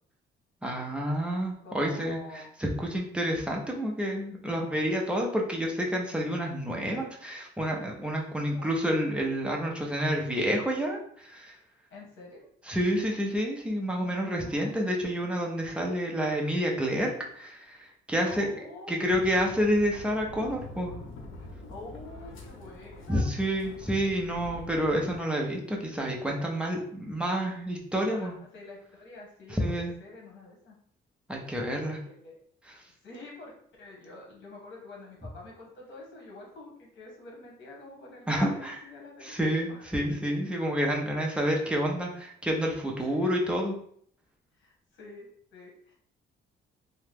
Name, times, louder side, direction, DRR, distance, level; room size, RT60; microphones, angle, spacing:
voice 1, 0.6-11.6 12.7-18.5 18.9-20.9 23.1-28.3 29.5-29.9 31.3-32.0 38.3-38.8 39.2-43.7, equal, 5° right, -1 dB, 0.5 m, -29 dB
voice 2, 1.6-2.5 8.3-8.7 11.9-12.5 13.9-14.9 18.2-18.9 21.7-23.3 24.2-24.7 28.0-30.8 31.8-32.4 33.0-39.8 43.0-43.2 44.5-45.9, left 2 dB, 70° left, -1 dB, 1.2 m, -47 dB
sound 1, 19.1-25.2, left 2 dB, 85° left, 0.6 m, -45 dB
2.9 x 2.2 x 3.3 m, 0.63 s
cardioid pair, 135°, 20 cm